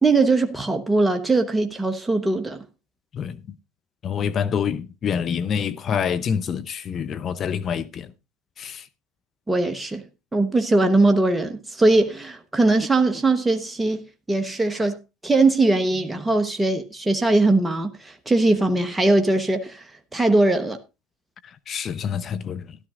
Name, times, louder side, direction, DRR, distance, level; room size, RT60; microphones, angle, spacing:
voice 1, 0.0-2.6 9.5-10.0 10.3-19.9 20.1-20.8, right 2 dB, 10° right, 1.1 m, -20 dB
voice 2, 3.1-3.6 4.0-8.1 8.6-8.9 21.7-22.8, left 7 dB, 40° left, 0.7 m, -27 dB
13.5 x 12.0 x 2.5 m
hypercardioid pair, 80°, 0 cm